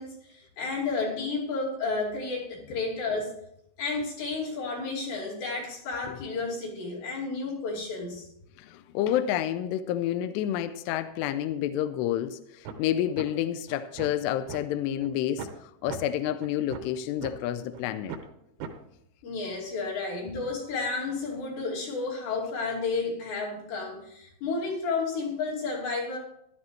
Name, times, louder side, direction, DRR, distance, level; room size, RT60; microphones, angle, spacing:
voice 1, 0.0-3.3 3.8-8.3 19.2-26.2, left 3 dB, 65° left, 4.8 m, -32 dB
voice 2, 8.6-18.2, left 11 dB, 85° left, 2.4 m, -29 dB
sound 1, 12.7-12.8 13.2-13.3 13.7-14.6 15.0-15.1 15.4-15.6 15.9-16.0 16.4-17.3 17.7-17.8 18.1-18.3 18.6-18.7, right 6 dB, 80° right, 3.4 m, -38 dB
15.5 x 12.0 x 3.2 m
omnidirectional pair, 5.4 m